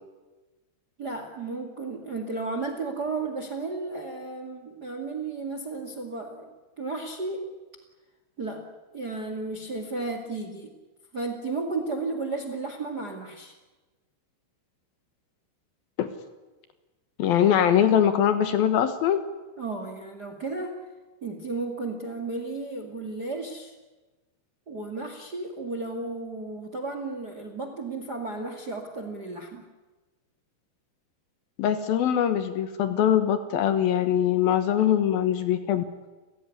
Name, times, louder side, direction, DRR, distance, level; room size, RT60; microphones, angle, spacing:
voice 1, 1.0-7.5 8.4-8.6 8.9-10.7 11.1-13.5 19.6-20.8 21.2-23.7 24.7-29.7, right 3 dB, 35° right, 6 dB, 1.7 m, -33 dB
voice 2, 17.2-19.2 31.6-35.8, left 9 dB, 70° left, 10 dB, 2.7 m, -22 dB
30.0 x 16.0 x 9.7 m, 1.2 s
omnidirectional pair, 5.0 m